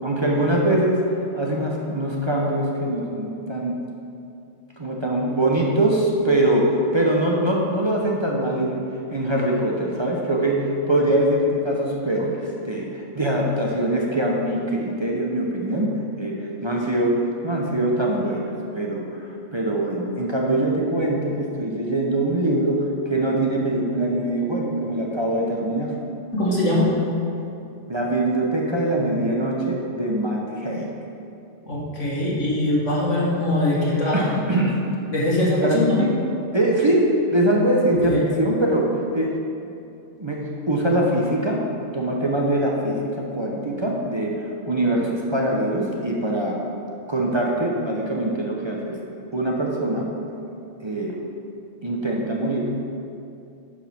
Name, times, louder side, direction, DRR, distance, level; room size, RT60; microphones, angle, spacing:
voice 1, 0.0-1.0 1.3-3.8 4.8-8.8 9.1-26.0 27.9-30.9 34.1-34.8 35.3-35.8 36.5-39.3 40.2-41.7 41.9-44.4 44.7-46.6 47.1-49.0 49.3-50.1 50.8-51.2 51.8-52.7, right 1 dB, 25° right, -2 dB, 0.8 m, -23 dB
voice 2, 26.3-26.9 31.7-34.2 35.1-36.1 38.1-38.2, left 1 dB, 85° left, -6 dB, 2.3 m, -21 dB
9.3 x 4.9 x 5.9 m, 2.6 s
omnidirectional pair, 1.2 m